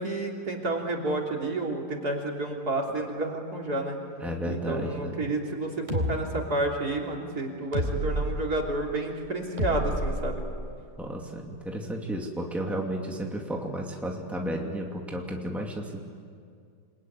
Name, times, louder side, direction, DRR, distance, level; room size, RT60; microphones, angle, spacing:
voice 1, 0.0-4.0 4.5-10.4, right 2 dB, 60° right, 0 dB, 3.8 m, -30 dB
voice 2, 4.2-5.3 11.0-16.0, right 1 dB, ahead, 0 dB, 2.4 m, -33 dB
sound 1, 5.9-6.1 7.7-8.3 9.6-10.7, right 1 dB, 25° right, 4.2 m, -29 dB
28.5 x 21.5 x 9.6 m, 2.3 s
omnidirectional pair, 1.9 m